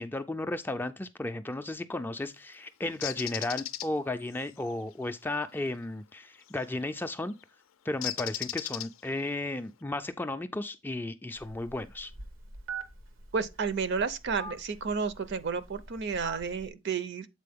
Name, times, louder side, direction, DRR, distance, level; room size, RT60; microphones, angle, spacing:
voice 1, 0.0-7.3 7.9-12.1, left 2 dB, 10° left, 0.3 m, -34 dB
Bird, 3.0-3.9 6.5-6.7 8.0-9.2, left 13 dB, 85° left, 0.4 m, -35 dB
Telephone, 11.4-16.7, right 4 dB, 90° right, 1.0 m, -44 dB
voice 2, 13.3-17.3, right 5 dB, 60° right, 0.6 m, -31 dB
7.5 x 4.1 x 3.5 m
head